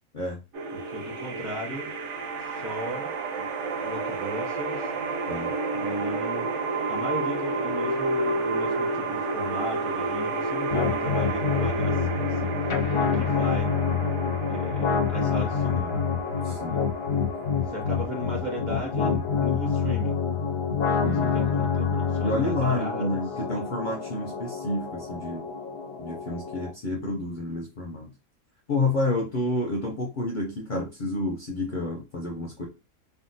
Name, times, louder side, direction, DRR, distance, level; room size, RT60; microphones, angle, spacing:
sound 1, 0.5-19.5, right 3 dB, 70° right, 0.9 m, -31 dB
voice 1, 0.7-1.9 2.4-3.5 3.8-4.9 5.7-6.5 6.9-13.7 14.5-16.0 16.4-16.5 17.7-20.2 21.0-23.2, equal, 40° right, -1 dB, 0.7 m, -36 dB
sound 2, 10.7-26.7, left 6 dB, 85° left, 1.1 m, -27 dB
voice 2, 16.4-16.8 21.0-21.4 22.2-25.5 26.0-28.1 28.7-32.7, left 2 dB, 55° left, 0 dB, 0.5 m, -29 dB
3.6 x 2.0 x 2.6 m, 0.27 s
omnidirectional pair, 1.4 m